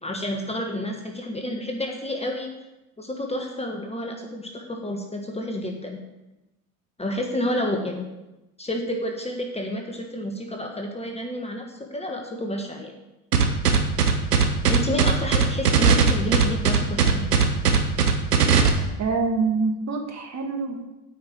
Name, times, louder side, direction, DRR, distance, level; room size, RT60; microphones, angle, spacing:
voice 1, 0.0-2.5 3.0-6.0 7.0-8.1 8.6-12.9 14.7-17.2, left 1 dB, 15° left, 2 dB, 1.5 m, -30 dB
sound 1, 13.3-18.7, right 6 dB, 90° right, 1.2 m, -18 dB
voice 2, 19.0-20.8, right 4 dB, 35° right, 2 dB, 2.1 m, -25 dB
8.7 x 5.5 x 7.6 m, 0.98 s
hypercardioid pair, 75°, 45 cm